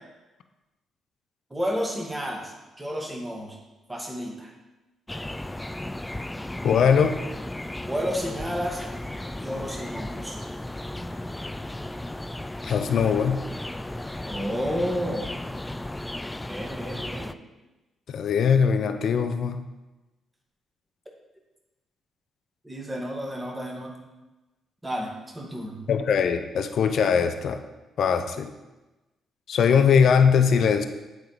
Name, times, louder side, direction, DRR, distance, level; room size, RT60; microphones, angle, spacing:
voice 1, 1.5-2.5 2.8-3.6 3.9-4.5 7.9-8.8 9.4-10.4 14.3-15.3 16.4-17.3 22.6-23.9 24.8-25.9, equal, 15° right, -1 dB, 2.0 m, -31 dB
sound 1, 5.1-17.3, left 1 dB, 15° left, 0.4 m, -35 dB
voice 2, 6.6-7.2 12.6-13.5 18.1-19.7 25.9-27.6 28.0-28.5 29.5-30.9, left 6 dB, 65° left, 8 dB, 0.6 m, -21 dB
8.2 x 4.6 x 5.1 m, 1.1 s
supercardioid pair, 50°, 0 cm